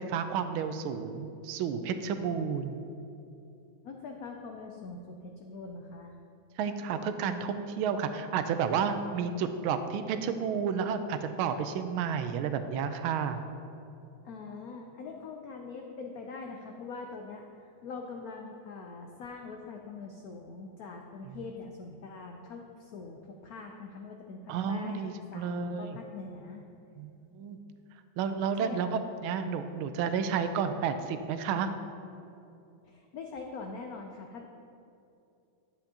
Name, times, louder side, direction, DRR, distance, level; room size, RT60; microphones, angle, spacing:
voice 1, 0.0-2.8 6.6-13.4 24.5-26.0 27.0-27.6 28.2-31.7, right 6 dB, 85° right, 9 dB, 1.4 m, -31 dB
voice 2, 3.8-6.2 14.2-26.6 28.6-28.9 32.8-34.5, left 4 dB, 90° left, 2 dB, 0.8 m, -43 dB
10.0 x 7.9 x 2.8 m, 2.7 s
omnidirectional pair, 2.2 m